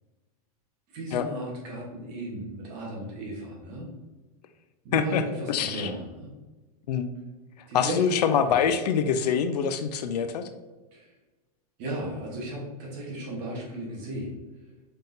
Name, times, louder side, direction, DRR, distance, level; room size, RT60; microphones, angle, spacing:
voice 1, 0.9-3.9 4.8-6.3 7.7-8.0 8.5-8.6 10.9-11.1 11.8-14.4, right 1 dB, 30° right, -3 dB, 1.1 m, -35 dB
voice 2, 5.5-5.9 6.9-7.1 7.7-10.4, left 7 dB, 85° left, 9 dB, 0.5 m, -25 dB
4.2 x 3.6 x 2.6 m, 1.2 s
supercardioid pair, 175°, 20 cm